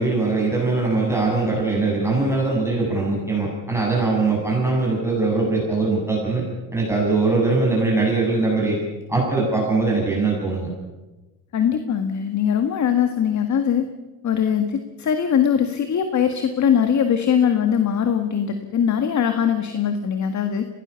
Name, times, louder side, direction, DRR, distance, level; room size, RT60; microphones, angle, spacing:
voice 1, 0.0-6.4 6.7-8.8 9.1-10.7, right 3 dB, 5° right, -3 dB, 7.9 m, -21 dB
voice 2, 11.5-13.9 14.2-20.7, left 8 dB, 45° left, 8 dB, 1.8 m, -21 dB
22.0 x 18.0 x 7.0 m, 1.1 s
supercardioid pair, 95°, 38 cm